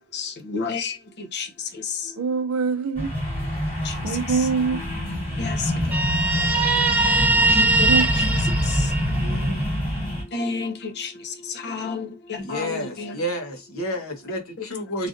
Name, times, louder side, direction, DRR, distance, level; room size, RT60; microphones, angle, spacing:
voice 1, 0.1-1.5 1.7-2.1 3.8-3.9 4.3-4.5 5.4-5.7 7.5-8.9 10.3-13.2, left 5 dB, 50° left, 0.6 m, -31 dB
voice 2, 2.2-3.1 4.0-5.9 7.9-9.7, right 5 dB, 85° right, 0.5 m, -27 dB
sound 1, 3.0-10.2, equal, 30° left, 1.4 m, -26 dB
Guitar, 5.9-9.5, right 2 dB, 5° right, 0.4 m, -21 dB
voice 3, 12.4-15.1, equal, 70° left, 0.9 m, -30 dB
3.3 x 2.5 x 2.4 m
head